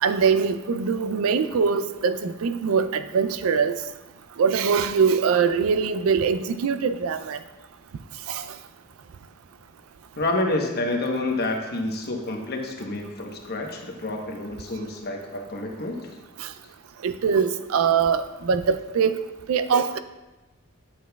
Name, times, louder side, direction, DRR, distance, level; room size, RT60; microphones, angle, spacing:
voice 1, 0.0-3.8 4.4-7.4 8.3-8.4 16.4-16.5 17.0-20.0, right 6 dB, 80° right, 11 dB, 0.4 m, -23 dB
voice 2, 10.2-16.2, left 2 dB, 50° left, 1 dB, 1.0 m, -28 dB
8.5 x 7.2 x 2.3 m, 1.1 s
head